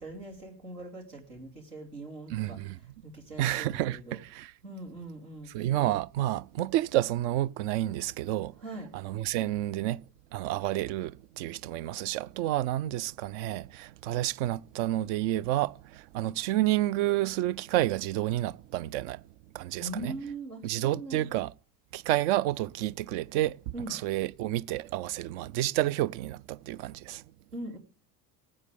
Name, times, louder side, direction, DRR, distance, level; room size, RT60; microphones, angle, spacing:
voice 1, 0.0-4.2 4.6-5.5 8.6-8.9 19.8-21.3 23.7-24.0 27.5-27.8, right 2 dB, 75° right, 3.1 m, -41 dB
voice 2, 2.3-2.8 3.4-4.5 5.5-8.5 8.9-10.0 10.3-19.2 19.5-20.2 20.6-21.5 21.9-27.2, right 14 dB, 50° right, 0.5 m, -30 dB
19.0 x 8.6 x 3.4 m
figure-of-eight pair, 65°, 47 cm